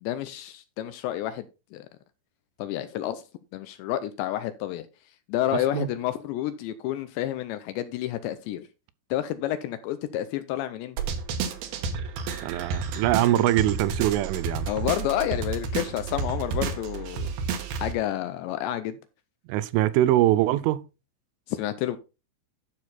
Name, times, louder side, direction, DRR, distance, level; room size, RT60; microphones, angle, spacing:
voice 1, 0.0-1.5 1.7-1.9 2.6-3.2 3.5-4.9 5.3-8.7 9.1-11.0 14.7-17.3 17.8-19.0 21.5-22.0, left 12 dB, 80° left, 2.7 m, -30 dB
voice 2, 5.5-5.9 12.4-14.7 19.5-20.8, right 14 dB, 85° right, 3.2 m, -23 dB
sound 1, 11.0-17.9, right 5 dB, 65° right, 2.8 m, -31 dB
12.0 x 6.4 x 4.1 m
omnidirectional pair, 5.6 m